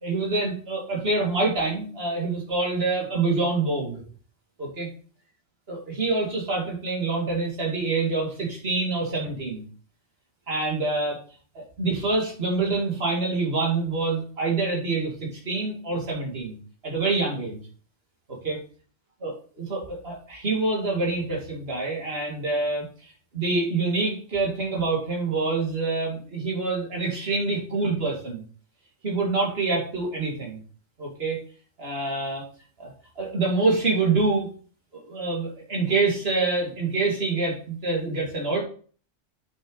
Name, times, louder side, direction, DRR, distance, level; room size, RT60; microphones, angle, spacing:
voice 1, 0.0-4.0 4.6-4.9 5.7-9.6 10.5-11.2 11.5-15.1 15.4-16.6 16.8-17.6 18.4-18.6 19.2-28.4 29.0-30.6 31.0-31.4 31.8-32.4 32.8-32.9 33.2-34.5 34.9-38.6, right 3 dB, 50° right, -2 dB, 2.8 m, -26 dB
8.4 x 6.8 x 4.0 m, 0.43 s
omnidirectional pair, 1.3 m